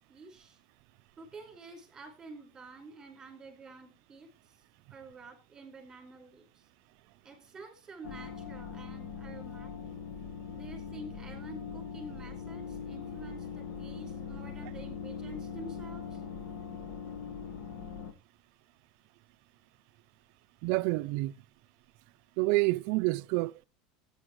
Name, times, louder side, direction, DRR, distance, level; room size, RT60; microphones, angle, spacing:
voice 1, 0.1-0.6 1.2-4.5 4.9-6.6 7.2-9.9 10.5-16.2, right 3 dB, 15° right, 5.1 m, -49 dB
sound 1, 8.0-18.1, left 6 dB, 60° left, 1.8 m, -41 dB
voice 2, 20.6-21.4 22.4-23.6, right 22 dB, 60° right, 0.5 m, -28 dB
16.5 x 9.8 x 3.1 m
supercardioid pair, 150°, 3 cm